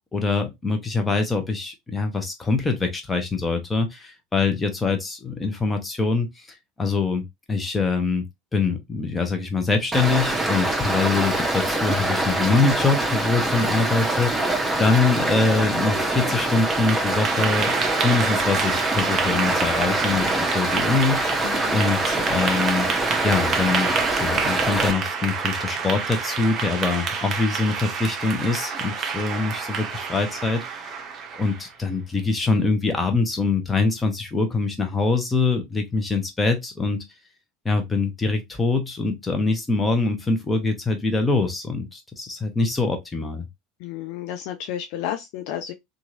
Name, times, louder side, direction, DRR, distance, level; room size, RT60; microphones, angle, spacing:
voice 1, 0.1-6.3 6.8-8.2 8.5-17.7 18.0-21.4 21.7-22.9 23.2-23.9 24.2-30.8 31.4-37.0 37.6-43.5, left 4 dB, 15° left, 0.9 m, -24 dB
Stream, 9.9-24.9, right 2 dB, 10° right, 0.8 m, -24 dB
Clapping / Applause, 16.5-31.7, right 6 dB, 40° right, 0.7 m, -28 dB
voice 2, 21.4-21.7 43.8-45.7, left 11 dB, 55° left, 0.4 m, -31 dB
2.9 x 2.5 x 2.6 m
figure-of-eight pair, 70°, 0 cm